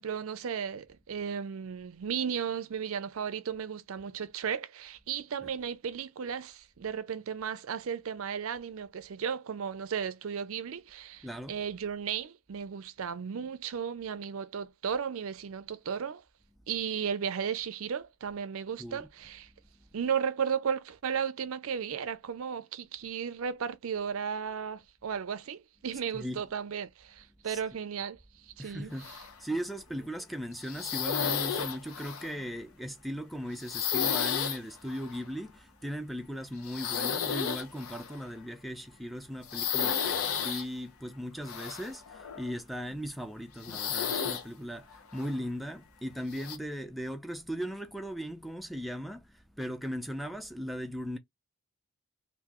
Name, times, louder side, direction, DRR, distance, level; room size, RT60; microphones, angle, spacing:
voice 1, 0.0-16.2 16.7-19.5 19.9-28.2 28.6-28.9, right 7 dB, 70° right, 0.4 m, -35 dB
voice 2, 11.2-11.6 18.8-19.1 26.1-26.4 27.4-27.6 28.6-51.2, equal, ahead, 0.4 m, -38 dB
sound 1, 29.0-29.6 30.0-30.2 30.6-32.4 33.6-34.6 34.9-35.2 36.6-38.2 39.4-40.6 41.4-42.5 42.9-43.0 43.6-44.4 44.9-45.4 46.3-46.6, left 7 dB, 80° left, 0.8 m, -33 dB
3.7 x 2.6 x 2.9 m
head